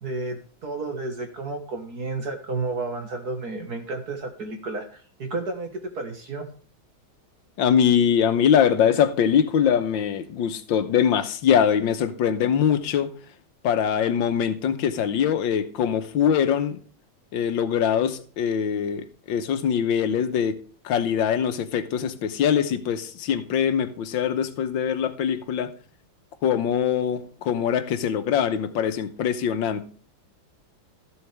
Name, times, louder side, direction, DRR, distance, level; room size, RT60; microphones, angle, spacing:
voice 1, 0.0-6.5, right 3 dB, 50° right, 2.0 m, -32 dB
voice 2, 7.6-13.1 13.6-16.8 17.3-20.6 20.8-25.7 26.4-29.9, left 8 dB, 70° left, 1.7 m, -23 dB
13.5 x 8.0 x 3.4 m
omnidirectional pair, 2.2 m